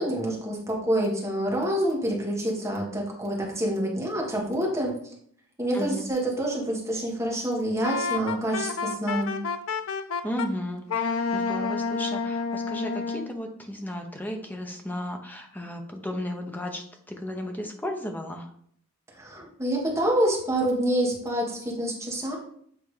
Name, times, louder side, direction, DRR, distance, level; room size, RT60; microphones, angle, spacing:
voice 1, 0.0-5.0 5.6-9.3 19.1-22.4, right 1 dB, 15° right, -2 dB, 1.3 m, -27 dB
voice 2, 5.7-6.1 10.2-18.5, equal, 10° left, 3 dB, 0.7 m, -34 dB
Wind instrument woodwind instrument, 7.8-10.5 10.9-13.3, left 5 dB, 65° left, 0.5 m, -29 dB
8.4 x 3.5 x 3.2 m, 0.64 s
head